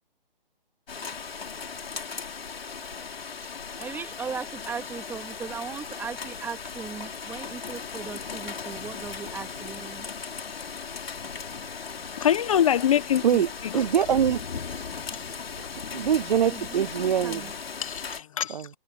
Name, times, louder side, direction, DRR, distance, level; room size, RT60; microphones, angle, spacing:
Rain, 0.9-18.2, left 6 dB, 80° left, 3.7 m, -37 dB
voice 1, 3.8-10.1 16.4-17.5, right 6 dB, 5° right, 2.6 m, -38 dB
voice 2, 12.2-13.9 15.1-15.2 17.8-18.7, left 10 dB, 35° left, 1.0 m, -25 dB
voice 3, 13.2-14.4 15.9-17.5 18.5-18.7, right 9 dB, 50° right, 0.4 m, -24 dB
hypercardioid pair, 160°, 30 cm